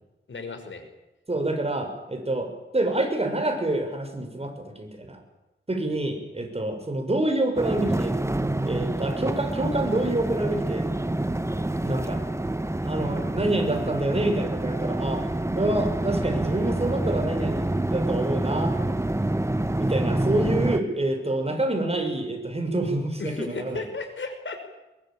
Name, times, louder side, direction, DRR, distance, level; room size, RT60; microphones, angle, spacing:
voice 1, 0.3-0.8 23.2-24.7, left 3 dB, 70° left, 6 dB, 5.5 m, -34 dB
voice 2, 1.3-5.2 5.7-8.2 8.6-10.9 11.8-12.2 12.8-15.3 15.5-18.8 19.8-23.8, right 1 dB, 30° right, 5 dB, 6.4 m, -27 dB
sound 1, 7.6-20.8, right 1 dB, 15° right, 1.3 m, -27 dB
23.0 x 21.0 x 9.0 m, 1.0 s
wide cardioid pair, 75°, 20 cm